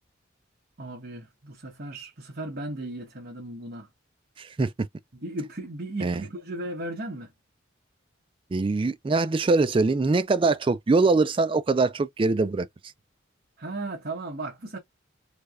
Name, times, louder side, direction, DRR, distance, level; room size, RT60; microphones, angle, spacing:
voice 1, 0.8-3.9 5.1-7.3 13.6-14.8, right 2 dB, 50° right, 1.1 m, -36 dB
voice 2, 4.4-4.7 6.0-6.2 8.5-12.7, right 3 dB, 25° right, 0.3 m, -23 dB
3.3 x 3.3 x 2.4 m
head